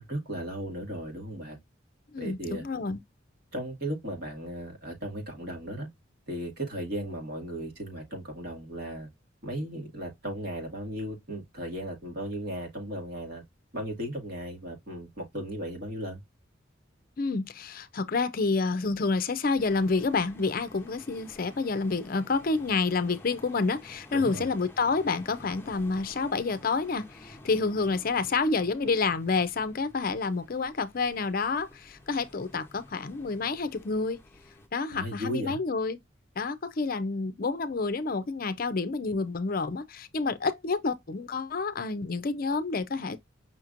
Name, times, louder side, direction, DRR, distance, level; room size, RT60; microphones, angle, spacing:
voice 1, 0.0-1.6 2.2-2.6 3.5-5.9 6.3-9.1 9.4-13.4 13.7-16.2 24.1-24.5 34.9-35.6, right 1 dB, 55° right, 2.0 m, -36 dB
voice 2, 2.1-3.0 17.2-34.2 34.7-36.0 36.4-43.2, left 4 dB, 45° left, 0.5 m, -29 dB
sound 1, 19.6-34.7, left 1 dB, 10° left, 0.7 m, -52 dB
5.7 x 2.9 x 2.5 m
head